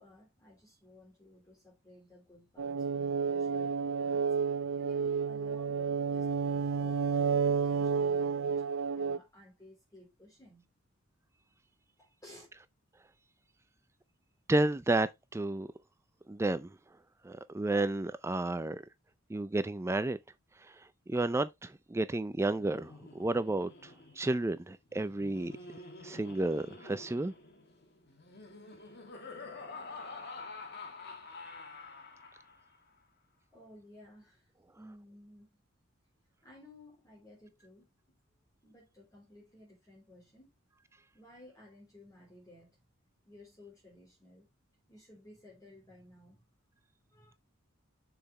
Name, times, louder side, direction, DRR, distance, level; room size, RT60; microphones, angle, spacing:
voice 1, 0.0-4.4 4.7-8.5 8.9-10.7 12.0-12.5 33.5-35.6 36.4-37.9 38.6-40.5 41.1-42.8 43.3-44.5 44.9-46.4 47.1-47.3, left 1 dB, 15° left, 3.4 m, -56 dB
sound 1, 2.6-9.2, right 5 dB, 80° right, 0.5 m, -31 dB
voice 2, 14.5-15.7 16.3-16.8 17.2-18.8 19.3-20.2 20.6-25.5 26.0-27.3, right 2 dB, 15° right, 0.4 m, -32 dB
Laughter, 22.3-32.8, left 3 dB, 55° left, 1.8 m, -48 dB
7.0 x 5.8 x 3.2 m
head